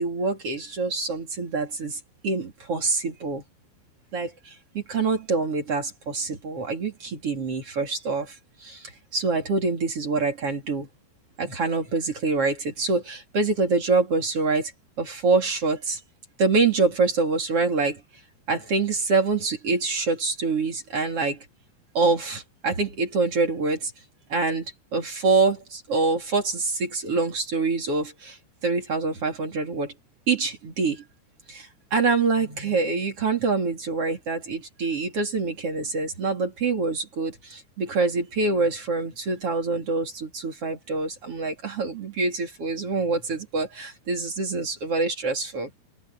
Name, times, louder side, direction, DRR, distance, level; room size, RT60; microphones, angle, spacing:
voice 1, 0.0-3.4 4.1-8.4 8.6-10.9 11.4-14.7 15.0-16.0 16.4-18.0 18.5-21.4 21.9-23.9 24.3-28.4 28.6-29.9 30.3-31.0 31.5-45.8, right 4 dB, 35° right, 3.4 m, -25 dB
open air
omnidirectional pair, 5.1 m